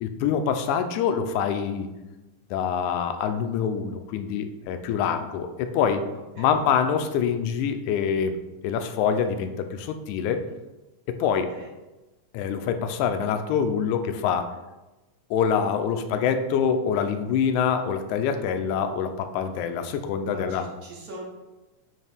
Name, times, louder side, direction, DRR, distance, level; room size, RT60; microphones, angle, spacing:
voice 1, 0.0-1.9 2.5-6.1 6.4-10.4 11.1-11.5 12.3-14.5 15.3-20.7, left 7 dB, 80° left, 8 dB, 1.9 m, -25 dB
voice 2, 11.2-11.7 20.3-21.2, right 2 dB, 60° right, -3 dB, 1.0 m, -42 dB
9.0 x 3.2 x 3.4 m, 1.1 s
omnidirectional pair, 3.6 m